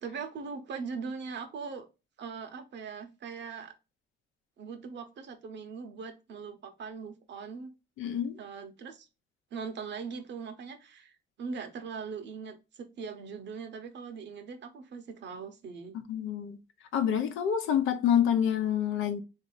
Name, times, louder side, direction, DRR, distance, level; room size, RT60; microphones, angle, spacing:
voice 1, 0.0-1.8 2.2-3.7 4.6-7.7 8.4-9.1 9.5-16.0, right 5 dB, 65° right, 0.9 m, -40 dB
voice 2, 8.0-8.4 16.1-16.6 16.9-19.2, left 9 dB, 85° left, 0.8 m, -27 dB
3.6 x 2.7 x 3.9 m
cardioid pair, 90°, 20 cm